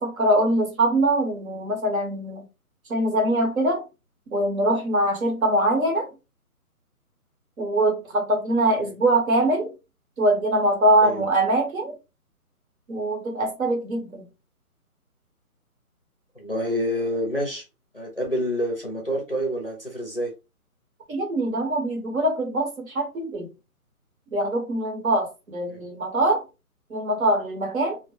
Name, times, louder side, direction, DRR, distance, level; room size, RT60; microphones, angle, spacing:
voice 1, 0.0-2.5 2.9-3.8 4.3-6.1 7.6-9.7 10.2-11.9 12.9-14.3 21.1-23.5 24.3-26.4 26.9-28.0, right 1 dB, 65° right, 1.0 m, -23 dB
voice 2, 16.4-17.6 17.9-20.3 25.7-25.8, equal, 40° left, 0.5 m, -28 dB
2.2 x 2.0 x 2.8 m
hypercardioid pair, 180°, 45 cm